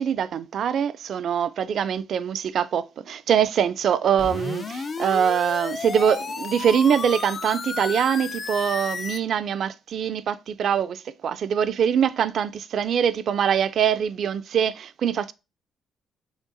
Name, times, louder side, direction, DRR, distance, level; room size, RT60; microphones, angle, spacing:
voice 1, 0.0-15.3, right 8 dB, 65° right, 0.3 m, -23 dB
sound 1, 4.2-9.2, left 4 dB, 40° left, 0.4 m, -32 dB
6.3 x 3.3 x 2.5 m
cardioid pair, 90°, 0 cm